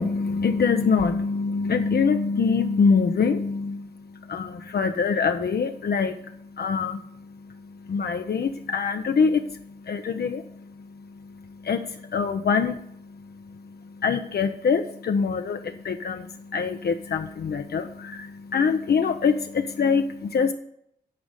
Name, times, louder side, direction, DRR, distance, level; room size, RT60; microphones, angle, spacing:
voice 1, 0.0-20.5, left 5 dB, 60° left, 6 dB, 0.7 m, -25 dB
9.8 x 4.0 x 6.4 m, 0.71 s
cardioid pair, 60°, 18 cm